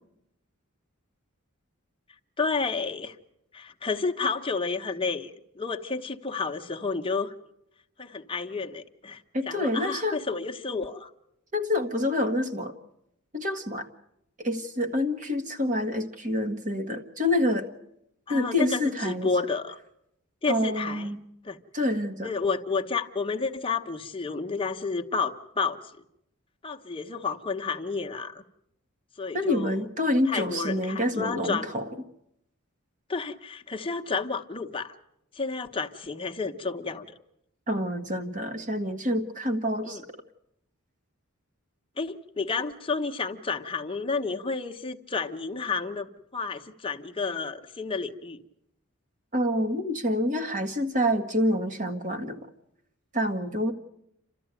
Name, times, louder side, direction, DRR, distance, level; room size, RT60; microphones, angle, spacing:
voice 1, 2.4-3.2 3.5-7.3 8.0-11.1 18.3-19.8 20.4-21.1 21.4-21.6 22.2-25.8 26.6-28.4 29.2-29.9 30.3-31.7 33.1-34.9 35.3-37.1 39.8-40.0 42.0-48.4, left 4 dB, 25° left, 4 dB, 1.1 m, -31 dB
voice 2, 9.3-10.2 11.5-12.7 13.3-13.9 14.4-17.7 18.3-19.3 20.5-21.2 21.7-22.3 29.3-31.9 37.7-40.0 49.3-52.4 53.1-53.7, left 1 dB, 35° right, 6 dB, 1.8 m, -27 dB
29.5 x 13.5 x 9.1 m, 0.82 s
head